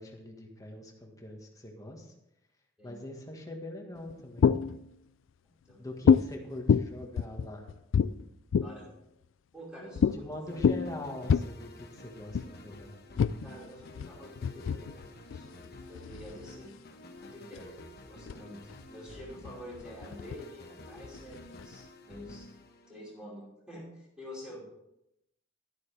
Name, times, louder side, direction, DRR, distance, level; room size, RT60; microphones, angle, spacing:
voice 1, 0.0-2.1 2.8-4.5 5.8-7.7 9.8-12.9, left 1 dB, 20° left, 2 dB, 1.6 m, -43 dB
sound 1, 4.0-4.9 6.1-6.3 6.7-8.9 10.0-10.2 10.5-11.4 12.3-12.5 13.2-16.6 17.3-17.8 18.3-18.4 18.6-20.4 21.0-21.9, left 6 dB, 75° left, 0.3 m, -27 dB
voice 2, 9.5-10.6 13.4-15.0 15.3-16.7 17.2-18.6 18.9-22.5 22.9-24.6, equal, 5° right, -6 dB, 4.8 m, -48 dB
sound 2, 10.5-23.4, left 1 dB, 55° left, 1.2 m, -50 dB
11.5 x 10.5 x 3.4 m, 0.83 s
head